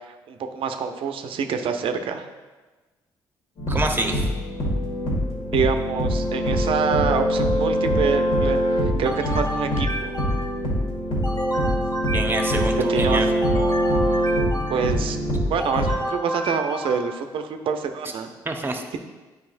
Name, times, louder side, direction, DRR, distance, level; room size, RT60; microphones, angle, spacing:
voice 1, 0.1-2.3 5.5-10.1 12.9-13.2 14.7-15.2 15.5-18.3, right 6 dB, 60° right, 6 dB, 0.7 m, -26 dB
sound 1, 3.6-15.9, equal, 60° left, 2.1 m, -23 dB
voice 2, 3.7-4.3 12.1-13.3 18.4-18.8, right 2 dB, 20° right, 3 dB, 1.1 m, -26 dB
sound 2, 9.0-10.7 11.2-12.9 13.4-15.1 15.6-17.3, equal, 40° left, 1.5 m, -31 dB
9.4 x 4.8 x 2.6 m, 1.2 s
hypercardioid pair, 50°, 10 cm